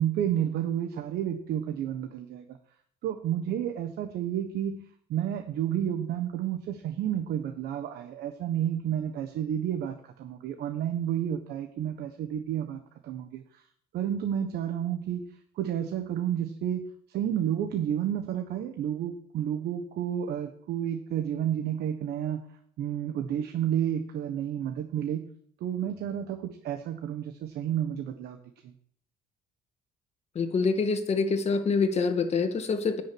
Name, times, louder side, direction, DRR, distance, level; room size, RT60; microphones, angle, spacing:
voice 1, 0.0-2.6 3.0-4.8 5.1-13.6 13.9-15.3 15.5-22.4 22.8-25.2 25.6-28.4 28.6-28.7, right 10 dB, 70° right, 6 dB, 1.3 m, -31 dB
voice 2, 30.4-33.0, left 4 dB, 40° left, 7 dB, 1.9 m, -26 dB
10.5 x 6.3 x 8.6 m, 0.62 s
cardioid pair, 110°, 17 cm